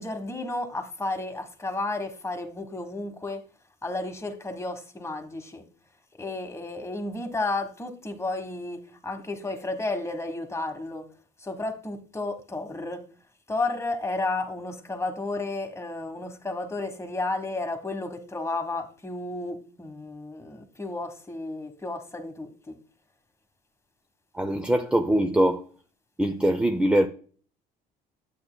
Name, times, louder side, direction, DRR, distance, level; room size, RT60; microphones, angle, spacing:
voice 1, 0.0-3.4 3.8-5.6 6.2-11.1 11.4-13.0 13.5-22.8, left 2 dB, 15° left, 1.3 m, -32 dB
voice 2, 24.3-25.6 26.2-27.1, right 1 dB, 5° right, 0.6 m, -22 dB
8.6 x 8.1 x 2.2 m
supercardioid pair, 90°, 18 cm